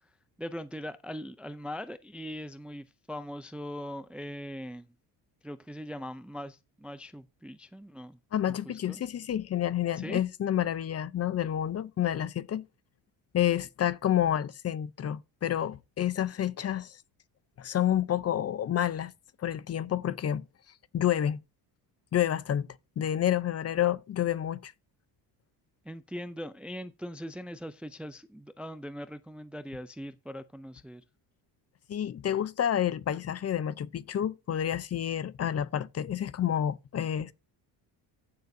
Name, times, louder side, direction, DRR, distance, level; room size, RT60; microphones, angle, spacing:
voice 1, 0.4-4.9 5.4-8.2 8.5-9.0 10.0-10.2 25.9-31.0, equal, 5° right, 0.4 m, -41 dB
voice 2, 8.3-12.6 13.3-17.0 17.6-19.1 19.4-20.4 20.9-21.4 22.1-22.7 23.0-24.7 31.9-37.3, left 10 dB, 35° left, 0.7 m, -29 dB
14.5 x 6.7 x 2.7 m
cardioid pair, 110°, 41 cm